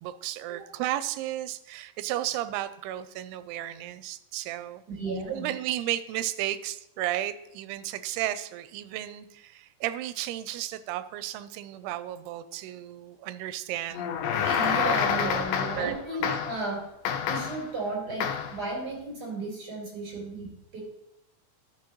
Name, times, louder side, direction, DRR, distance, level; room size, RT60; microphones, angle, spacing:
voice 1, 0.0-4.8 5.3-16.4, right 13 dB, 85° right, 13 dB, 2.6 m, -34 dB
voice 2, 5.0-5.5 14.5-16.8 17.3-20.8, right 2 dB, 25° right, -4 dB, 4.3 m, -34 dB
sound 1, 13.9-15.9 16.2-16.6 17.0-17.7 18.2-18.6, left 7 dB, 75° left, 2.1 m, -28 dB
12.0 x 6.7 x 3.0 m, 0.82 s
omnidirectional pair, 4.6 m